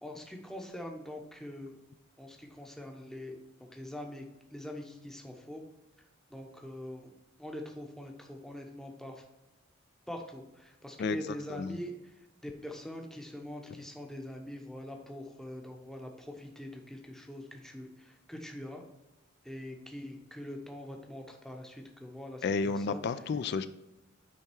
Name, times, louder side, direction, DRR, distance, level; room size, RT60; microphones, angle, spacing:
voice 1, 0.0-1.7 2.2-3.3 3.7-4.2 4.5-5.6 6.3-7.1 7.4-9.2 10.1-12.1 12.4-18.8 19.4-23.0, left 1 dB, ahead, 2 dB, 0.7 m, -43 dB
voice 2, 22.4-23.7, left 4 dB, 50° left, 12 dB, 0.3 m, -31 dB
8.7 x 3.5 x 4.5 m, 0.98 s
head